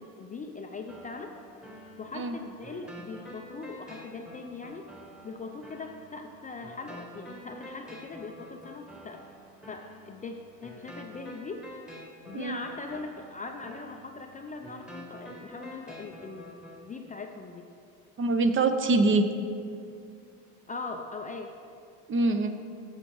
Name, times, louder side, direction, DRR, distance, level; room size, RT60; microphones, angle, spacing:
voice 1, 0.0-1.3 2.0-4.9 5.2-9.2 9.7-11.7 12.3-17.7 20.7-21.5, left 3 dB, 20° left, 3 dB, 0.4 m, -41 dB
sound 1, 0.9-16.9, equal, ahead, 1.1 m, -48 dB
voice 2, 18.2-19.3 22.1-22.5, right 3 dB, 30° right, 8 dB, 0.6 m, -24 dB
14.5 x 5.1 x 3.0 m, 2.4 s
supercardioid pair, 90°, 43 cm